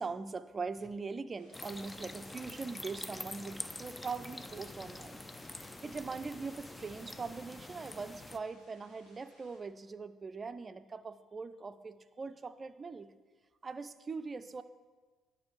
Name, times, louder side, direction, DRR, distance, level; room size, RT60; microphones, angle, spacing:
voice 1, 0.0-13.1 13.6-14.6, right 4 dB, 30° right, 12 dB, 0.5 m, -42 dB
sound 1, 1.4-9.6, left 1 dB, 80° left, 2.3 m, -65 dB
sound 2, 1.5-8.4, left 2 dB, 15° left, 0.6 m, -46 dB
9.6 x 5.4 x 7.3 m, 1.3 s
figure-of-eight pair, 45°, 0 cm